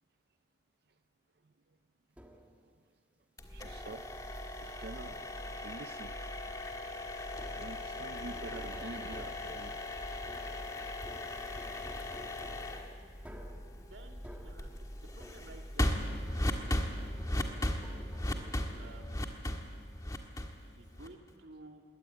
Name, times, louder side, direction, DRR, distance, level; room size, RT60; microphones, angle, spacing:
sound 1, 2.2-2.7 3.7-4.1 5.0-5.6 7.3-15.8 16.1-19.3, equal, 10° right, 1.7 m, -53 dB
sound 2, 3.4-21.3, left 1 dB, 20° left, 1.6 m, -38 dB
voice 1, 3.5-4.1 4.6-5.2 5.5-6.1 7.3-9.8, right 2 dB, 55° right, 10 dB, 0.6 m, -46 dB
voice 2, 13.7-14.7 15.0-16.9 18.8-19.7 20.6-21.8, right 2 dB, 80° right, 2 dB, 2.3 m, -55 dB
21.5 x 18.0 x 9.3 m, 2.1 s
head